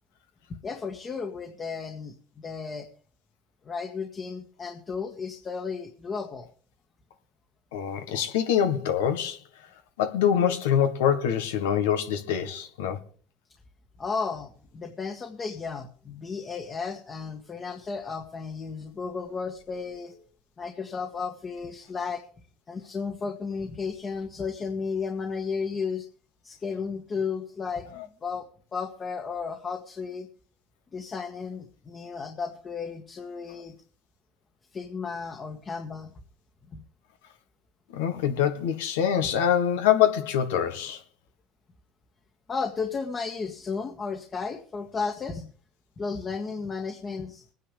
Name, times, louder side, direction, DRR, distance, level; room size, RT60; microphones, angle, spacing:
voice 1, 0.6-2.9 3.6-6.5 14.0-20.3 20.6-22.3 22.7-26.1 26.4-30.3 30.9-33.7 34.7-36.1 36.7-36.8 42.5-45.5 46.0-47.5, left 5 dB, 35° left, 1.7 m, -34 dB
voice 2, 7.7-9.4 10.0-13.0 27.9-28.0 37.9-41.0, left 9 dB, 90° left, 1.6 m, -24 dB
22.5 x 9.7 x 3.5 m
supercardioid pair, 85°, 0 cm